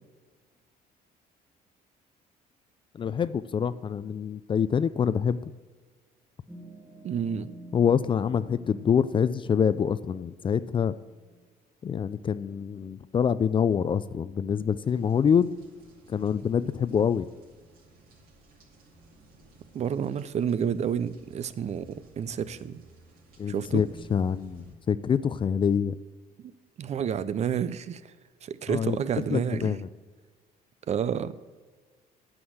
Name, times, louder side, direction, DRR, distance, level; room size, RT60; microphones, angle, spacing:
voice 1, 3.0-5.5 7.7-10.9 11.8-15.5 16.1-17.3 23.4-25.9 28.7-29.0 29.3-29.9, left 7 dB, 30° left, 15 dB, 0.3 m, -26 dB
sound 1, 6.5-11.5, right 2 dB, 5° right, 1.3 m, -50 dB
voice 2, 7.0-7.5 19.7-22.8 23.5-23.8 26.4-26.5 26.8-28.0 28.4-29.8 30.9-31.3, right 8 dB, 40° right, 15 dB, 0.5 m, -30 dB
sound 2, 14.8-24.7, right 1 dB, 60° right, 2.5 m, -54 dB
9.4 x 6.2 x 7.9 m, 1.4 s
cardioid pair, 110°, 17 cm